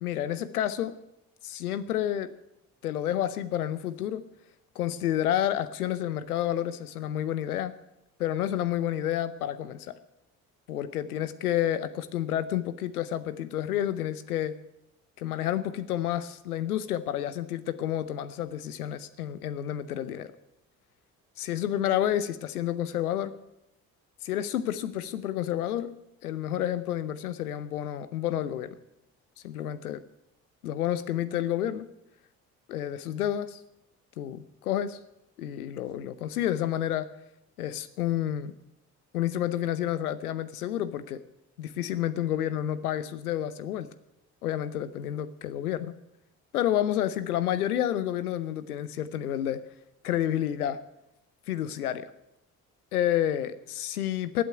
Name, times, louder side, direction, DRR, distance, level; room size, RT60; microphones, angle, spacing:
voice 1, 0.0-1.0 1.4-2.3 2.8-4.2 4.7-7.8 8.2-10.0 10.7-14.6 15.2-20.3 21.4-23.4 24.2-25.9 26.2-28.8 29.4-30.0 30.6-31.9 32.7-33.6 34.2-35.0 35.4-37.1 37.6-38.5 39.1-41.2 41.6-43.9 44.4-45.9 46.5-49.6 50.0-50.8 51.5-52.0 52.9-54.4, left 11 dB, 80° left, 14 dB, 0.8 m, -30 dB
16.0 x 8.6 x 9.5 m, 0.86 s
figure-of-eight pair, 45°, 44 cm